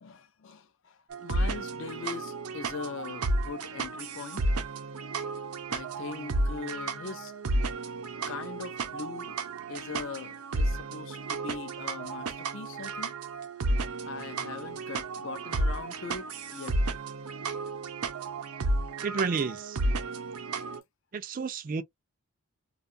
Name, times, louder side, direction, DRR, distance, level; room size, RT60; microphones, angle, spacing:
voice 1, 0.0-4.6 5.7-7.3 8.3-9.4 9.7-13.1 14.0-17.0, left 5 dB, 55° left, 0.4 m, -41 dB
sound 1, 1.1-20.8, right 2 dB, 90° right, 0.6 m, -32 dB
voice 2, 19.0-19.8 21.1-21.8, right 5 dB, 40° right, 0.3 m, -31 dB
2.5 x 2.3 x 2.5 m
head